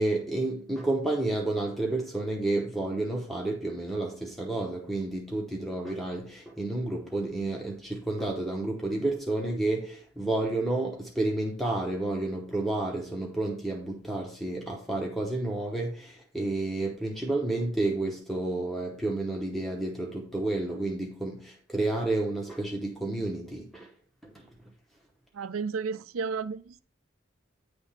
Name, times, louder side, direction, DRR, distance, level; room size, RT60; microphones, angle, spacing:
voice 1, 0.0-23.9 24.2-24.5, right 2 dB, ahead, 0.8 m, -30 dB
voice 2, 25.3-26.8, right 5 dB, 90° right, 0.5 m, -32 dB
9.2 x 3.5 x 5.6 m
head